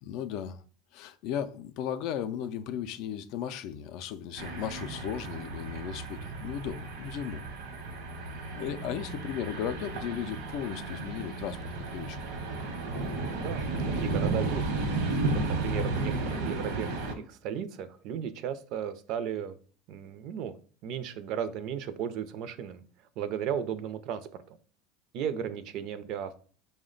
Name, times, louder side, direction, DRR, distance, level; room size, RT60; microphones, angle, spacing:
voice 1, 0.0-0.6 0.9-7.5 8.6-12.2, left 9 dB, 60° left, 0.3 m, -36 dB
sound 1, 4.4-17.1, right 3 dB, 75° right, 0.9 m, -33 dB
voice 2, 14.0-14.7 15.5-19.6 19.9-20.5 20.8-22.8 23.2-24.6 25.1-26.4, right 9 dB, 55° right, 0.4 m, -35 dB
4.9 x 2.1 x 3.8 m
supercardioid pair, 130°, 0 cm